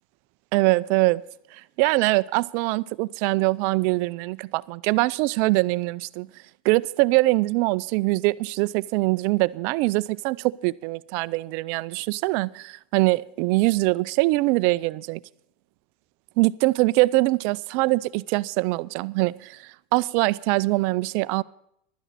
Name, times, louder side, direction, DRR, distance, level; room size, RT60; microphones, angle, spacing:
voice 1, 0.5-1.2 1.5-6.3 6.6-15.2 16.4-21.4, right 22 dB, 40° right, 0.4 m, -23 dB
16.0 x 12.5 x 4.1 m
supercardioid pair, 165°, 5 cm